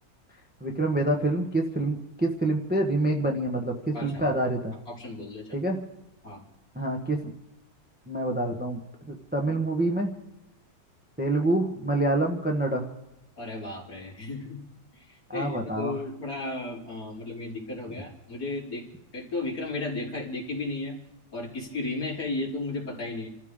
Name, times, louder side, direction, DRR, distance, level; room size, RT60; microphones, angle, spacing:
voice 1, 0.6-4.7 5.5-5.8 6.7-7.3 8.1-8.8 9.1-10.1 11.2-12.9 15.3-16.0, right 2 dB, 5° right, 1 dB, 1.0 m, -26 dB
voice 2, 3.9-4.3 4.9-5.6 6.2-6.4 13.4-14.6 14.9-18.9 19.1-20.9 21.3-23.3, left 2 dB, 50° left, -4 dB, 4.2 m, -34 dB
28.0 x 14.0 x 3.7 m, 0.93 s
omnidirectional pair, 1.9 m